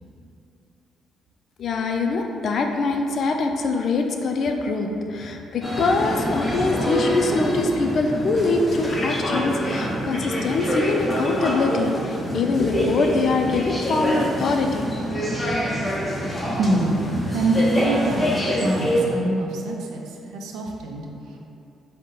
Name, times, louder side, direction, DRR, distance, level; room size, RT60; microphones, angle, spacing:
voice 1, 1.6-14.8, left 3 dB, 60° left, 4 dB, 0.4 m, -23 dB
sound 1, 5.6-19.0, equal, 15° left, 0.9 m, -26 dB
voice 2, 16.4-20.0 20.3-21.4, right 1 dB, 85° right, 1 dB, 0.5 m, -25 dB
5.3 x 2.2 x 3.7 m, 2.7 s
cardioid pair, 90°, 0 cm